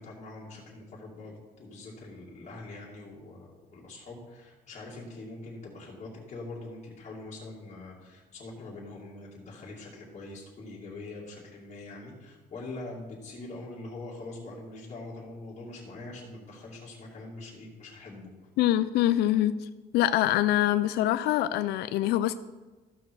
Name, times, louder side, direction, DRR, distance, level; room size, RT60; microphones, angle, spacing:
voice 1, 0.0-18.3, left 2 dB, 40° left, -5 dB, 2.5 m, -43 dB
voice 2, 18.6-19.7 19.9-22.3, left 13 dB, 75° left, 12 dB, 0.4 m, -24 dB
14.0 x 6.2 x 4.6 m, 1.2 s
cardioid pair, 110°, 17 cm